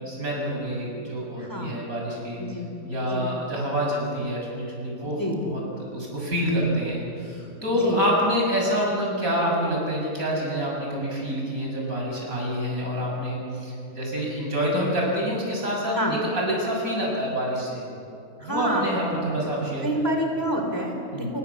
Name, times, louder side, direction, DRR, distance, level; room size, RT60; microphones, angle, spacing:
voice 1, 0.0-2.4 2.8-5.6 5.9-17.8 18.4-19.9 21.1-21.3, equal, 65° right, -2 dB, 7.6 m, -27 dB
voice 2, 1.4-1.8 2.4-2.7 3.0-3.3 5.2-5.4 7.8-8.0 16.0-16.2 18.4-18.9 19.8-21.4, equal, 10° left, 3 dB, 3.3 m, -27 dB
29.0 x 23.0 x 7.2 m, 2.6 s
omnidirectional pair, 1.6 m